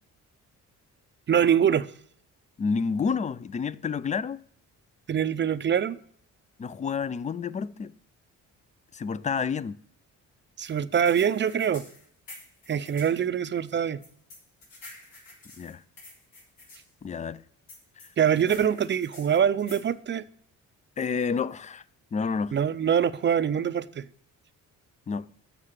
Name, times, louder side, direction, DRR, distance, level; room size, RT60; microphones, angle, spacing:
voice 1, 1.3-1.9 5.1-6.0 10.6-11.8 12.7-14.0 18.2-20.2 22.5-24.0, right 8 dB, 35° right, 0.5 m, -24 dB
voice 2, 2.6-4.4 6.6-7.9 8.9-9.8 15.6-15.8 17.0-17.4 21.0-21.8 22.1-22.6 25.1-25.3, left 5 dB, 25° left, 0.3 m, -29 dB
sound 1, 10.6-13.1 14.0-16.8 17.7-19.9, left 2 dB, 90° left, 3.8 m, -48 dB
7.5 x 6.7 x 6.4 m
cardioid pair, 110°, 33 cm